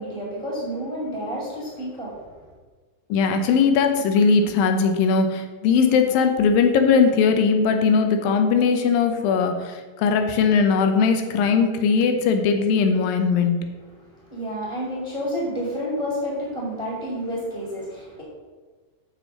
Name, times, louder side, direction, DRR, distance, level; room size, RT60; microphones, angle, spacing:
voice 1, 0.0-2.2 14.0-18.2, equal, 10° right, -5 dB, 1.5 m, -30 dB
voice 2, 3.1-13.6, left 5 dB, 90° left, 5 dB, 2.6 m, -19 dB
6.7 x 6.6 x 6.3 m, 1.4 s
omnidirectional pair, 4.0 m